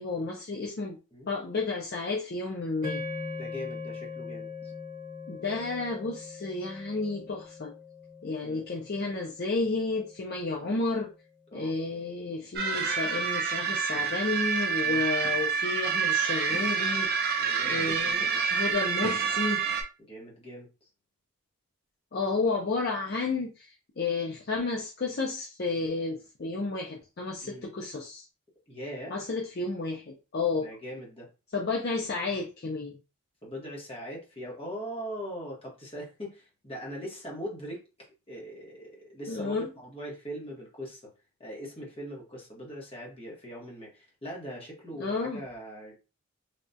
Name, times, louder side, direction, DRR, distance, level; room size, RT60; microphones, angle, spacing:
voice 1, 0.0-1.0 1.3-3.0 5.3-7.7 8.2-11.1 11.5-17.3 17.6-19.6 22.1-28.2 29.1-30.7 31.5-33.0 39.3-39.7 45.0-45.4, left 3 dB, 45° left, -1 dB, 0.5 m, -31 dB
sound 1, 2.8-11.2, left 4 dB, 30° right, 1.1 m, -41 dB
voice 2, 3.3-4.7 8.4-8.6 10.6-10.8 11.5-11.7 14.8-15.0 17.4-18.3 20.0-20.7 27.4-27.7 28.7-29.1 30.6-31.3 33.4-41.1 41.4-46.0, equal, 25° left, -2 dB, 1.0 m, -41 dB
sound 2, 12.6-19.8, right 6 dB, 45° right, 0.5 m, -28 dB
3.4 x 2.3 x 2.6 m, 0.30 s
head